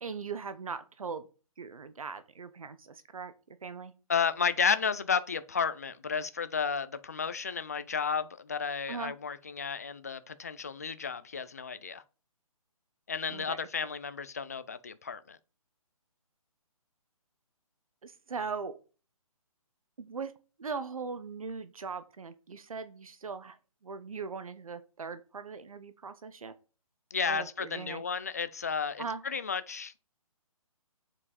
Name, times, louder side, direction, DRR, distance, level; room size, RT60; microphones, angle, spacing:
voice 1, 0.0-1.3 1.6-3.9 8.9-9.1 13.3-13.6 18.0-18.8 20.0-23.6 23.8-26.5 27.3-28.0 29.0-29.2, right 5 dB, 70° right, 1.0 m, -40 dB
voice 2, 4.1-12.0 13.1-15.4 27.1-30.0, left 6 dB, 25° left, 0.4 m, -32 dB
7.3 x 4.9 x 4.1 m
hypercardioid pair, 175°, 19 cm